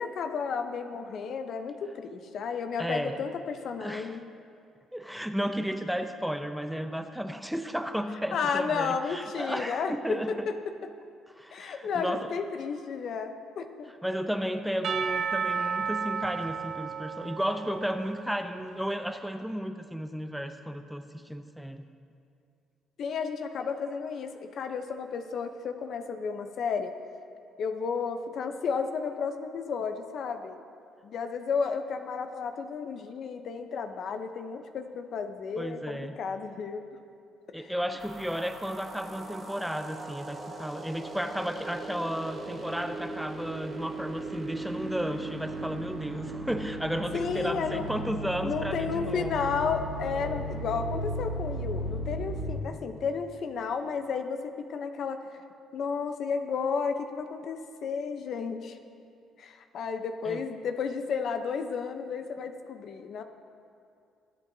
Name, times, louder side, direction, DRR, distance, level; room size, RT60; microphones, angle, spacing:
voice 1, 0.0-4.3 8.3-10.2 10.5-10.6 11.5-13.9 23.0-26.9 27.6-30.6 31.0-36.8 37.5-37.7 47.1-47.9 48.4-55.4 55.7-58.8 59.4-63.2, left 5 dB, 60° left, 7 dB, 0.8 m, -32 dB
voice 2, 2.8-3.2 3.8-4.2 4.9-10.5 11.4-12.3 14.0-21.8 35.6-36.2 37.5-49.4 60.2-60.4, equal, ahead, 8 dB, 0.6 m, -33 dB
Percussion / Church bell, 14.8-18.8, right 6 dB, 60° right, 0.6 m, -33 dB
sound 1, 38.0-52.6, right 1 dB, 35° right, 2.4 m, -37 dB
21.0 x 8.4 x 2.8 m, 2.4 s
cardioid pair, 80°, 0 cm